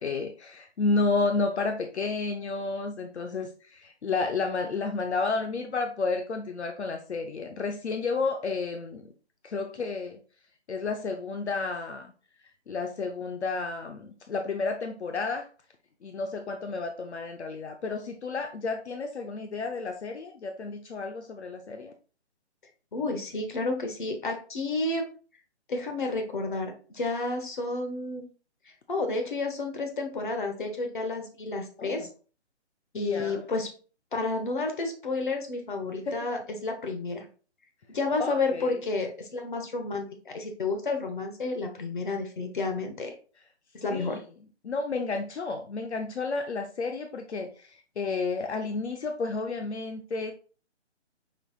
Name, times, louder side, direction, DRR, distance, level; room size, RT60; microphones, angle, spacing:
voice 1, 0.0-9.1 9.4-10.2 10.7-12.1 12.7-15.5 16.0-21.9 31.8-32.1 32.9-33.4 36.1-36.2 38.2-38.7 43.9-44.2 44.6-50.3, left 3 dB, 70° left, 5 dB, 0.7 m, -31 dB
voice 2, 22.9-25.1 25.7-28.3 28.9-32.1 32.9-33.7 34.1-37.3 37.9-43.1 43.7-44.2, left 3 dB, 45° left, 4 dB, 1.0 m, -31 dB
5.4 x 3.9 x 2.4 m, 0.39 s
hypercardioid pair, 175°, 35 cm